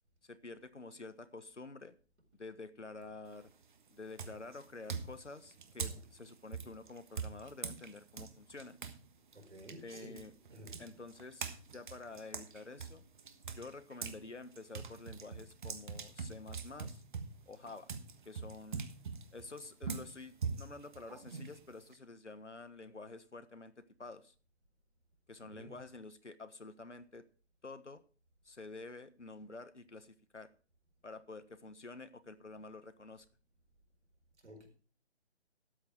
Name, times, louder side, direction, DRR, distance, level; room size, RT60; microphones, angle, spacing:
voice 1, 0.2-2.0 2.4-3.5 3.9-8.8 9.8-10.3 10.8-11.4 11.7-13.0 13.5-17.0 17.5-17.9 18.2-18.9 19.3-24.3 25.3-27.2 27.6-28.0 28.4-30.5 31.0-33.2, left 3 dB, 85° left, 1.4 m, -49 dB
sound 1, 3.3-3.6 4.2-9.0 9.3-14.2 14.5-21.9, right 5 dB, 45° right, 1.4 m, -43 dB
voice 2, 9.3-10.9 25.5-25.8 34.4-34.7, equal, 75° right, 4.7 m, -53 dB
13.0 x 8.8 x 4.6 m
figure-of-eight pair, 145°, 35 cm